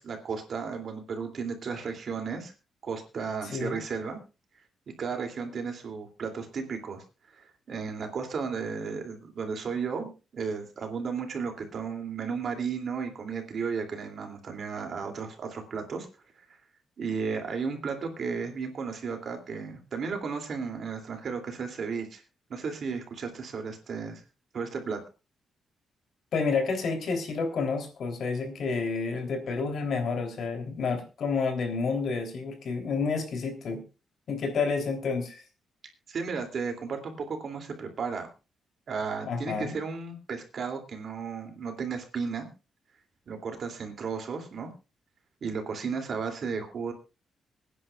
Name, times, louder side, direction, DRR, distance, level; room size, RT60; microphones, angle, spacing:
voice 1, 0.0-2.5 2.8-4.2 5.0-16.1 17.0-22.2 22.5-24.2 24.5-25.0 36.1-38.3 38.9-42.5 43.3-44.7 45.4-46.9, right 5 dB, 50° right, 4 dB, 2.7 m, -34 dB
voice 2, 3.4-3.8 26.3-33.8 34.3-35.4 39.2-39.8, left 4 dB, 55° left, 4 dB, 3.3 m, -30 dB
25.5 x 10.0 x 2.4 m, 0.30 s
wide cardioid pair, 160°, 0 cm